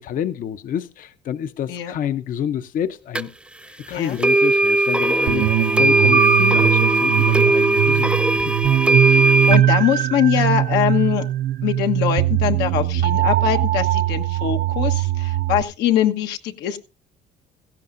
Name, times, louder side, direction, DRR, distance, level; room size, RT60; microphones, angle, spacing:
voice 1, 0.0-3.3 3.9-8.5, left 9 dB, 55° left, 0.7 m, -28 dB
sound 1, 3.2-3.3 4.2-9.6, right 1 dB, 5° right, 0.6 m, -18 dB
sound 2, 5.3-15.6, right 13 dB, 65° right, 0.6 m, -20 dB
voice 2, 9.0-11.3 11.6-16.8, left 10 dB, 90° left, 1.2 m, -22 dB
16.5 x 14.5 x 2.5 m
cardioid pair, 110°, 17 cm